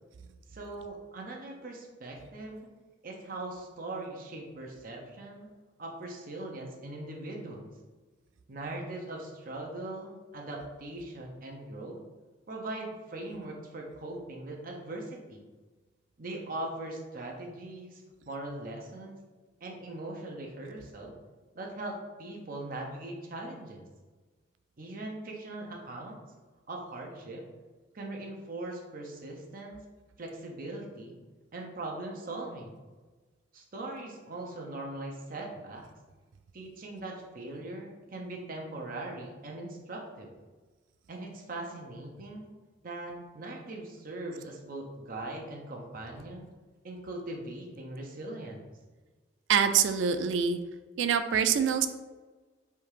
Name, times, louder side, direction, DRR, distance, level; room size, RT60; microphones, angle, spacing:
voice 1, 0.5-2.6 3.0-5.5 5.8-7.7 8.5-12.0 12.5-15.4 16.2-19.2 19.6-21.2 21.5-23.8 24.8-26.2 26.7-27.4 27.9-29.8 30.2-31.1 31.5-32.8 33.5-35.8 36.5-40.3 41.1-42.5 42.8-46.5 46.8-48.7, right 2 dB, 50° right, -1 dB, 0.7 m, -40 dB
voice 2, 49.5-50.6 51.0-51.9, right 7 dB, 85° right, 9 dB, 0.3 m, -25 dB
3.4 x 2.8 x 4.7 m, 1.3 s
head